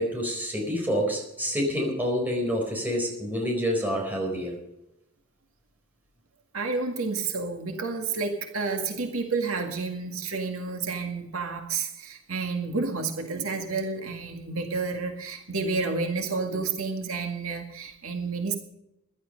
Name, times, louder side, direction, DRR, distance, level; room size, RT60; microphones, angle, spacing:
voice 1, 0.0-4.6, equal, 10° right, 0 dB, 4.3 m, -27 dB
voice 2, 6.5-18.5, right 4 dB, 75° right, 4 dB, 2.0 m, -30 dB
15.0 x 12.0 x 5.3 m, 0.91 s
head